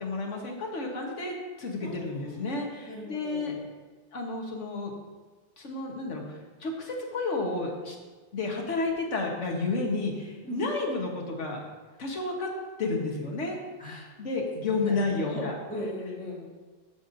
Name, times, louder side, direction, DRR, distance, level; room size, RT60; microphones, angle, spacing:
voice 1, 0.0-3.5 4.1-4.9 5.6-8.0 8.3-11.6 12.0-12.5 12.8-13.6 14.2-15.6, left 3 dB, 80° left, 0 dB, 1.5 m, -31 dB
voice 2, 1.8-2.4 2.9-3.6 10.4-10.6 13.8-14.1 14.7-16.4, left 1 dB, 5° left, -8 dB, 2.3 m, -38 dB
11.5 x 5.7 x 2.6 m, 1.4 s
omnidirectional pair, 1.2 m